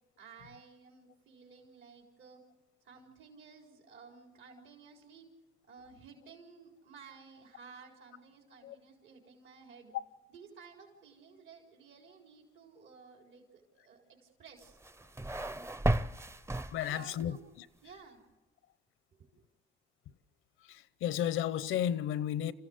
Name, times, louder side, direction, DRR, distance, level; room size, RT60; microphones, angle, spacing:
voice 1, 0.2-2.4 2.8-5.3 5.7-9.9 10.3-14.8 16.8-17.4 17.8-18.2 19.2-19.5, right 5 dB, 75° right, 4.2 m, -55 dB
sound 1, 14.6-17.3, right 1 dB, 15° right, 0.6 m, -34 dB
voice 2, 16.5-17.7 20.6-22.5, left 10 dB, 85° left, 0.9 m, -34 dB
27.5 x 15.5 x 8.0 m
cardioid pair, 90°, 20 cm